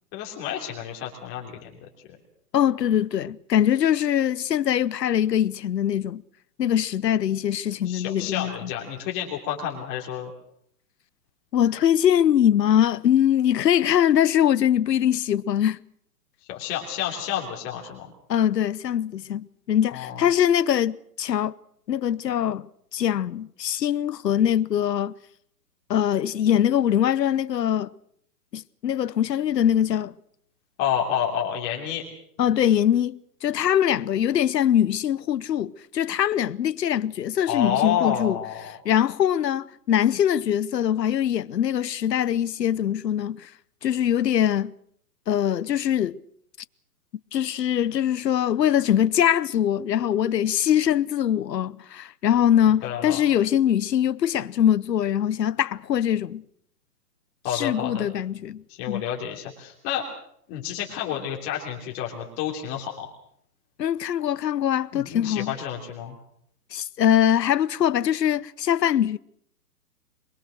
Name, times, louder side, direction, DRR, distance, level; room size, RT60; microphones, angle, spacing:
voice 1, 0.1-1.7 7.8-10.3 16.5-18.1 19.9-20.2 30.8-32.0 37.5-38.7 52.8-53.2 57.4-58.0 58.7-60.0 60.5-63.1 64.9-66.1, left 9 dB, 25° left, 3.2 m, -29 dB
voice 2, 2.5-6.2 6.6-8.7 11.5-15.8 18.3-21.5 21.9-22.7 22.9-25.1 25.9-27.9 28.5-30.1 32.4-38.4 38.7-43.5 43.8-44.7 45.3-46.2 47.3-56.4 57.5-59.0 63.8-65.5 66.7-69.2, left 10 dB, 85° left, 1.0 m, -22 dB
24.0 x 22.5 x 6.4 m
hypercardioid pair, 155°, 48 cm